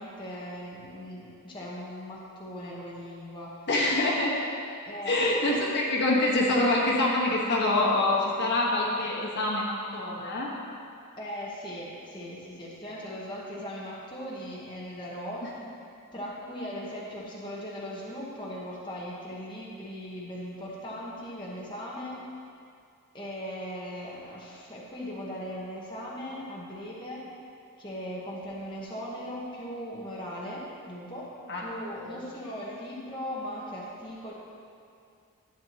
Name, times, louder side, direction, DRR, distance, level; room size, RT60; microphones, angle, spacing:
voice 1, 0.0-3.8 4.9-5.7 11.2-15.4 16.1-22.2 23.1-27.2 27.8-31.3 31.6-34.3, equal, 20° left, -6 dB, 1.1 m, -39 dB
voice 2, 3.7-4.3 5.0-10.5 15.4-15.5 31.5-31.7 32.0-32.2, left 2 dB, 50° left, -3 dB, 1.4 m, -25 dB
12.0 x 8.6 x 2.9 m, 2.4 s
head